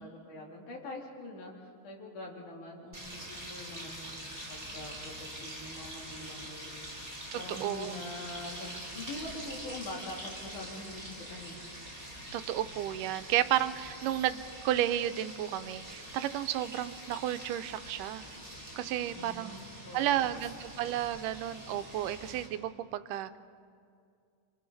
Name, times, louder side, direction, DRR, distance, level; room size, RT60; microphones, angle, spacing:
voice 1, 0.0-6.8 7.3-11.6 19.1-20.3, left 2 dB, 70° left, -2 dB, 4.5 m, -44 dB
sound 1, 2.9-22.5, right 1 dB, 5° right, 3.9 m, -45 dB
voice 2, 7.3-8.0 12.3-18.2 18.8-19.5 19.9-23.3, right 12 dB, 90° right, 12 dB, 2.3 m, -32 dB
28.5 x 25.5 x 4.0 m, 2.3 s
omnidirectional pair, 3.6 m